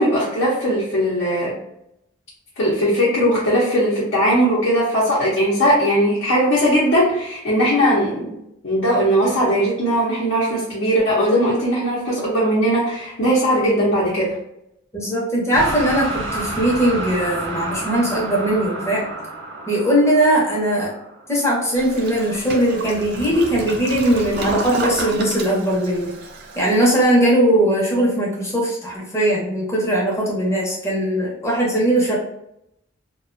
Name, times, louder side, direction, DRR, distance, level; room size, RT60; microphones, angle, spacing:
voice 1, 0.0-1.5 2.6-8.4 8.6-14.3, equal, 65° left, -7 dB, 0.7 m, -19 dB
voice 2, 14.9-19.0 19.7-20.9 21.3-26.1 26.6-32.2, right 1 dB, 15° left, -4 dB, 0.6 m, -19 dB
sound 1, 15.5-21.6, right 2 dB, 70° right, 0.7 m, -30 dB
Toilet flush, 21.7-27.1, right 2 dB, 50° right, 0.4 m, -31 dB
2.4 x 2.2 x 2.5 m, 0.81 s
head